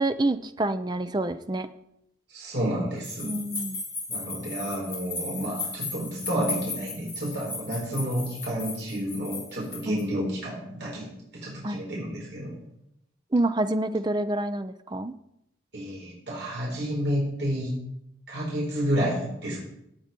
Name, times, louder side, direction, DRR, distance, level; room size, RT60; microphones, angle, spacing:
voice 1, 0.0-1.7 3.2-3.8 9.9-10.0 11.6-11.8 13.3-15.1, right 2 dB, 25° right, 10 dB, 0.6 m, -27 dB
voice 2, 2.3-3.3 4.1-11.1 11.3-12.5 15.7-17.7 18.3-19.6, equal, 70° right, -4 dB, 4.8 m, -30 dB
sound 1, 3.0-10.0, left 3 dB, 15° left, 4.5 m, -36 dB
17.5 x 8.4 x 4.5 m, 0.81 s
head